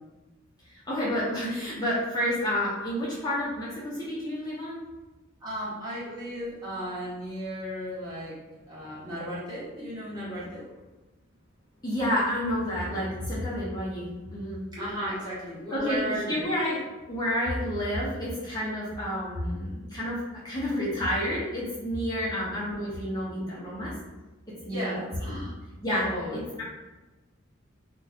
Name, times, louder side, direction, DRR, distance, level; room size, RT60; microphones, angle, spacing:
voice 1, 0.6-4.8 11.8-14.6 15.7-16.8 17.1-20.2 20.4-23.9 24.6-25.0 25.3-25.4 25.8-26.1 26.3-26.6, equal, 20° left, -8 dB, 0.6 m, -30 dB
voice 2, 5.4-8.4 8.7-10.7 14.7-16.5 22.2-22.4 24.7-25.5 26.0-26.4, equal, 20° right, -9 dB, 1.1 m, -35 dB
2.5 x 2.2 x 4.0 m, 1.2 s
head